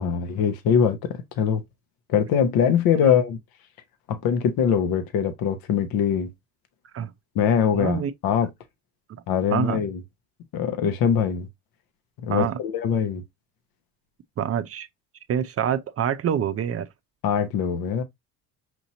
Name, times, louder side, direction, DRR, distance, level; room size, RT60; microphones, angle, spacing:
voice 1, 0.0-1.6 2.1-3.4 4.1-6.3 7.3-8.5 9.3-10.0 10.5-11.5 12.2-13.2 17.2-18.0, left 7 dB, 60° left, 0.9 m, -22 dB
voice 2, 7.7-8.1 9.1-9.2 9.5-9.8 12.3-12.6 14.4-14.9 15.3-16.9, right 8 dB, 35° right, 0.6 m, -26 dB
6.0 x 2.8 x 2.6 m
supercardioid pair, 75°, 39 cm